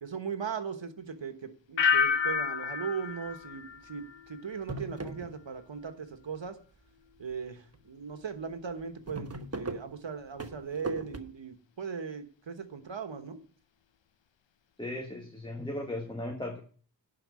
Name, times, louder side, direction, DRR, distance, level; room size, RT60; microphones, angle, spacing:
voice 1, 0.0-6.6 7.2-13.4, right 6 dB, 90° right, 8 dB, 1.4 m, -38 dB
sound 1, 1.8-4.6 4.9-5.4, left 6 dB, 85° left, 0.6 m, -30 dB
sound 2, 3.3-3.7 4.1-4.2 4.5-5.8 6.1-6.8 7.3-7.5 7.7-7.8 8.1-8.2 8.5-11.2, right 2 dB, 35° right, 1.2 m, -39 dB
voice 2, 14.8-16.6, left 1 dB, 10° left, 3 dB, 1.5 m, -37 dB
11.0 x 4.8 x 8.2 m, 0.43 s
wide cardioid pair, 60°, 44 cm